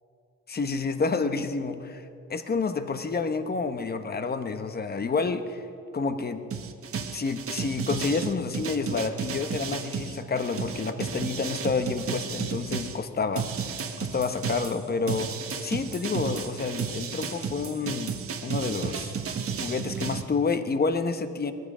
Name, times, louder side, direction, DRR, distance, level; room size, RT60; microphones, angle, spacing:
voice 1, 0.5-2.0 2.3-5.6 5.9-6.4 7.1-13.5 14.0-15.3 15.6-19.1 19.6-21.5, left 4 dB, 30° left, 9 dB, 1.1 m, -29 dB
sound 1, 6.5-13.0 13.4-20.2, right 6 dB, 50° right, 1.2 m, -33 dB
19.5 x 14.5 x 5.0 m, 2.7 s
cardioid pair, 90°, 30 cm